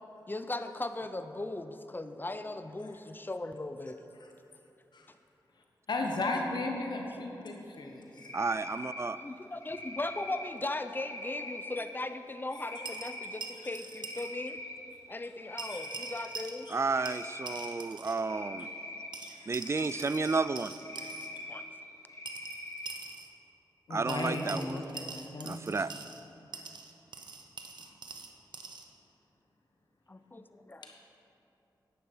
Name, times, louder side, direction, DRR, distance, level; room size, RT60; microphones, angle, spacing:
voice 1, 0.3-4.0 9.2-14.6 15.1-16.7 18.4-18.8 21.5-21.6 30.1-30.9, left 2 dB, 25° left, 9 dB, 0.6 m, -38 dB
voice 2, 5.9-8.1 15.7-15.8 16.7-16.8 19.2-19.5 19.9-20.0 20.5-20.6 23.9-25.6 27.8-27.9 30.8-31.0, left 2 dB, 70° left, 1 dB, 1.3 m, -36 dB
Cricket, 8.2-9.1 9.6-10.5 10.9-11.8 12.5-13.3 13.8-14.7 15.1-16.3 16.9-17.7 18.2-19.1 19.6-20.4 20.8-21.6 22.1-22.9, left 1 dB, 40° left, 2.4 m, -43 dB
voice 3, 8.3-9.2 16.7-18.7 19.5-20.7 23.9-24.8 25.4-25.9, right 4 dB, 35° right, 15 dB, 0.4 m, -32 dB
sound 1, 12.8-14.3 14.6-14.7 15.6-16.8 17.1-18.2 19.1-21.3 22.3-23.3 24.1-26.2 26.5-28.9, right 4 dB, 70° right, 0.9 m, -44 dB
10.5 x 9.3 x 5.6 m, 3.0 s
cardioid pair, 60°, 8 cm